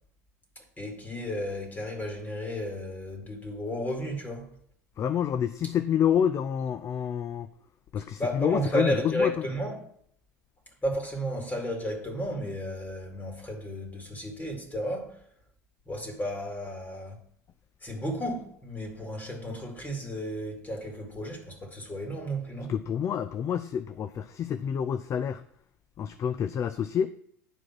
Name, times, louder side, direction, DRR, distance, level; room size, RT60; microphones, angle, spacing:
voice 1, 0.6-4.5 8.2-9.8 10.8-15.2 15.9-17.2 17.8-22.7, equal, 20° left, 2.5 m, -33 dB
voice 2, 5.0-7.5 7.9-9.3 22.7-25.4 26.0-27.1, left 8 dB, 35° left, 0.5 m, -28 dB
10.0 x 4.8 x 6.1 m
figure-of-eight pair, 75°, 9 cm